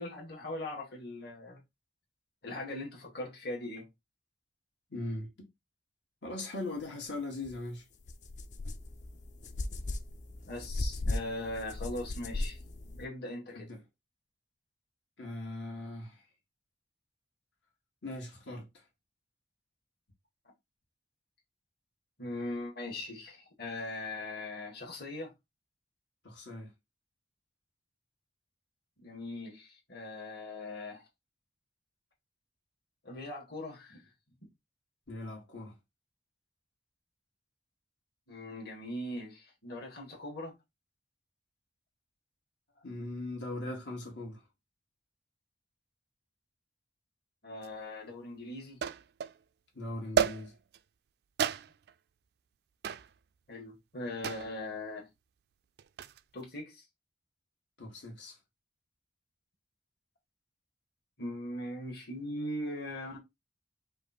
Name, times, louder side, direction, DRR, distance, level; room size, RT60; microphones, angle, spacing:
voice 1, 0.0-1.6 2.4-3.9 10.5-12.6 13.0-13.7 22.2-25.3 29.0-31.0 33.0-34.0 38.3-40.5 47.4-48.8 53.5-55.1 56.3-56.8 61.2-63.2, left 1 dB, 60° left, 1.8 m, -40 dB
voice 2, 4.9-5.5 6.2-7.8 13.5-13.8 15.2-16.2 18.0-18.8 26.2-26.7 35.1-35.8 42.8-44.4 49.7-50.5 57.8-58.4, left 2 dB, 80° left, 1.8 m, -40 dB
sound 1, 7.4-7.6 8.0-13.0, left 2 dB, 40° left, 0.5 m, -37 dB
sound 2, 47.6-47.7 48.8-49.4 50.2-50.8 51.4-51.9 52.8-53.1 54.2-54.6 55.8-56.2, right 7 dB, 60° right, 0.3 m, -31 dB
5.2 x 2.5 x 4.2 m
head